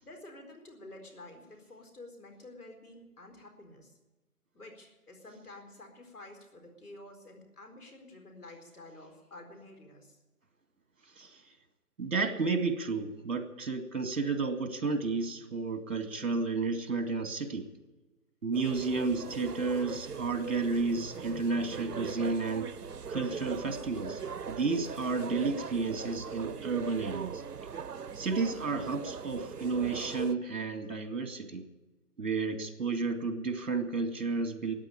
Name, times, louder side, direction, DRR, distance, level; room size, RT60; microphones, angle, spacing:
voice 1, 0.0-3.9 4.5-10.2, left 2 dB, 75° left, 4 dB, 4.5 m, -50 dB
voice 2, 12.0-17.6 18.4-22.7 23.1-24.2 24.5-27.4 28.1-31.6 32.2-34.7, right 4 dB, 55° right, 6 dB, 2.4 m, -32 dB
sound 1, 18.5-30.4, right 6 dB, 90° right, 0.8 m, -40 dB
14.0 x 9.8 x 10.0 m, 1.1 s
figure-of-eight pair, 160°, 45 cm